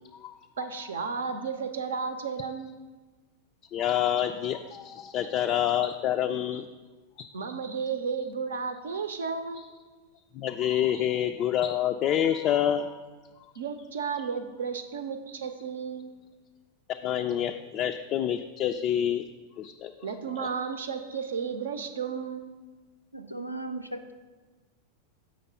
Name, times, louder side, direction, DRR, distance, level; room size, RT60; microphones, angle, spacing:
voice 1, 0.6-2.8 5.2-5.3 6.5-6.6 7.3-9.6 10.9-11.1 13.6-16.1 20.0-22.5, right 5 dB, 65° right, 8 dB, 0.7 m, -33 dB
voice 2, 3.7-6.7 10.4-12.9 17.0-19.2 19.6-19.9 20.4-20.5, left 10 dB, 35° left, 5 dB, 0.3 m, -27 dB
voice 3, 23.1-24.1, right 2 dB, 90° left, 6 dB, 0.5 m, -37 dB
7.6 x 5.2 x 5.5 m, 1.3 s
figure-of-eight pair, 90°, 0 cm